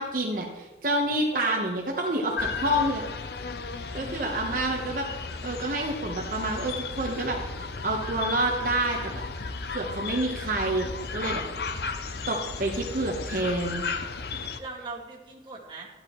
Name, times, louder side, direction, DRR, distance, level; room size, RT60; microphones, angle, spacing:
voice 1, 0.0-3.0 3.9-5.1 5.4-9.2 9.7-11.4 12.3-13.9, right 1 dB, 50° right, -1 dB, 1.1 m, -28 dB
sound 1, 2.4-14.6, left 4 dB, 60° left, 0.6 m, -35 dB
voice 2, 4.0-4.6 11.6-12.4 14.5-15.9, right 3 dB, 25° right, -3 dB, 1.9 m, -41 dB
13.5 x 11.0 x 3.1 m, 1.2 s
head